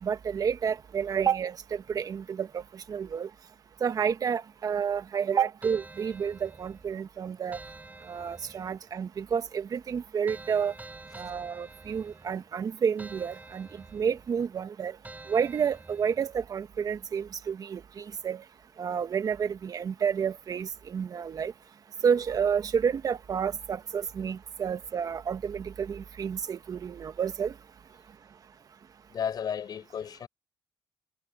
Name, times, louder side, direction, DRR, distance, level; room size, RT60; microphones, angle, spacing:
voice 1, 0.0-3.3 3.8-7.6 8.1-10.7 11.2-15.0 15.3-18.4 18.8-21.5 22.0-27.5, right 7 dB, 50° right, 1.5 m, -30 dB
sound 1, 5.6-6.9 7.5-8.8 10.3-12.5 13.0-14.3 15.0-16.3, right 2 dB, 20° right, 4.8 m, -48 dB
voice 2, 29.1-30.3, left 8 dB, 55° left, 6.1 m, -33 dB
supercardioid pair, 75°, 8 cm